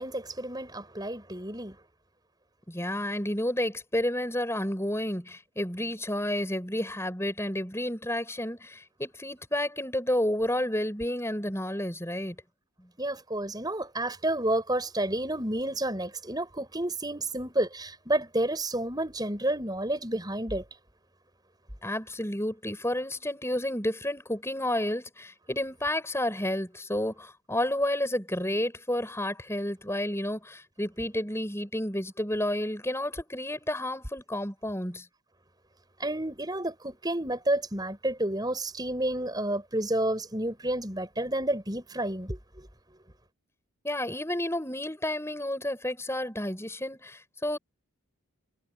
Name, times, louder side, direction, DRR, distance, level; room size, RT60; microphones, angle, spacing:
voice 1, 0.0-1.8 13.0-20.6 36.0-42.7, right 1 dB, 20° right, 7.4 m, -30 dB
voice 2, 2.7-12.4 12.8-12.9 21.8-35.1 43.8-47.6, left 1 dB, 10° left, 7.6 m, -31 dB
head